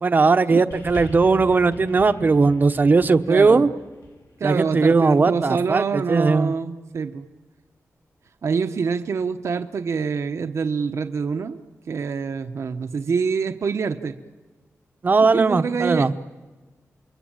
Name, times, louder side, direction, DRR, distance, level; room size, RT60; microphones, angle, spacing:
voice 1, 0.0-3.7 4.4-6.5 15.0-16.1, right 4 dB, 35° right, 10 dB, 1.0 m, -18 dB
sound 1, 0.7-5.3 6.1-6.2, left 2 dB, 70° left, 5.3 m, -42 dB
voice 2, 3.3-3.7 4.4-7.2 8.4-11.6 11.9-14.1 15.3-16.1, right 5 dB, 65° right, 7 dB, 1.0 m, -26 dB
29.0 x 23.0 x 8.9 m, 1.3 s
wide cardioid pair, 165°, 5 cm